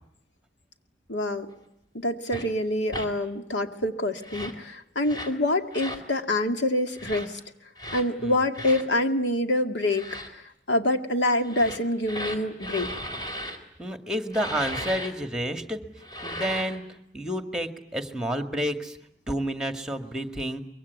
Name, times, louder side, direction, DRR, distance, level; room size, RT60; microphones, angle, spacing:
voice 1, 1.1-1.5 1.9-7.4 7.9-12.9, left 1 dB, 85° left, 6 dB, 2.3 m, -26 dB
sound 1, 2.3-2.5 2.9-3.1 4.2-4.6 5.0-5.4 5.7-6.0 6.9-7.3 7.8-8.1 8.5-8.8 9.8-10.3 11.4-13.6 14.3-15.1 16.0-16.8, equal, 25° left, 3.8 m, -36 dB
voice 2, 13.8-15.8 16.2-16.9 17.1-19.0 19.3-20.6, equal, 5° right, 7 dB, 2.1 m, -30 dB
24.5 x 23.0 x 9.5 m, 0.77 s
head